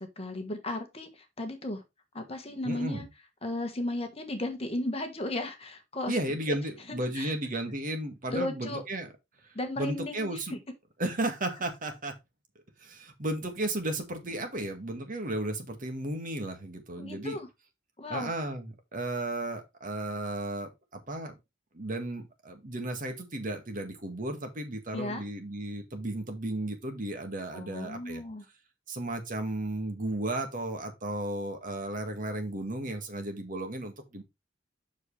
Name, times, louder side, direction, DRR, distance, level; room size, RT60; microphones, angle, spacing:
voice 1, 0.0-1.8 2.1-3.0 3.4-6.1 6.5-6.6 7.1-7.3 8.3-8.8 9.5-10.6 17.0-17.5 18.0-18.3 24.9-25.2 27.5-28.4, left 1 dB, 30° left, 1.4 m, -35 dB
voice 2, 2.6-3.1 6.1-9.1 9.8-10.5 11.0-12.1 12.8-17.4 18.1-21.3 21.7-28.2 28.9-34.2, right 1 dB, 45° right, 1.8 m, -34 dB
7.5 x 6.3 x 3.2 m
head